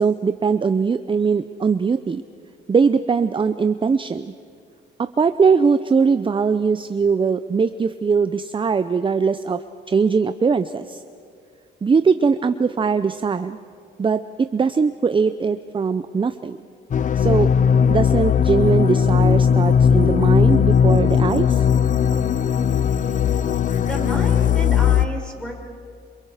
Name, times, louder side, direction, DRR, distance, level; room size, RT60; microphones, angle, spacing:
voice 1, 0.0-2.2 2.7-4.3 5.0-11.0 11.8-13.6 14.0-16.6 17.2-17.5 17.9-21.6, right 5 dB, 25° right, 11 dB, 0.6 m, -20 dB
sound 1, 16.9-25.1, left 7 dB, 40° left, 0.6 m, -17 dB
voice 2, 23.8-25.6, right 1 dB, 5° left, 0 dB, 5.9 m, -31 dB
28.0 x 27.5 x 5.0 m, 2.3 s
cardioid pair, 90°, 20 cm